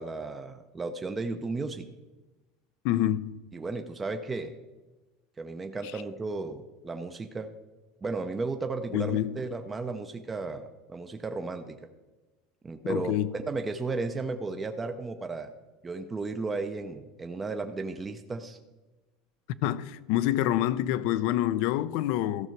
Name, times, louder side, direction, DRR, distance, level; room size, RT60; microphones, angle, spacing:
voice 1, 0.0-1.9 3.5-4.5 5.4-7.5 8.0-11.8 12.6-15.5 15.8-18.6, right 3 dB, 15° right, 0.5 m, -34 dB
voice 2, 2.8-3.4 8.9-9.4 12.8-13.3 19.6-22.5, left 13 dB, 65° left, 0.5 m, -27 dB
14.5 x 6.2 x 4.5 m
supercardioid pair, 145°, 0 cm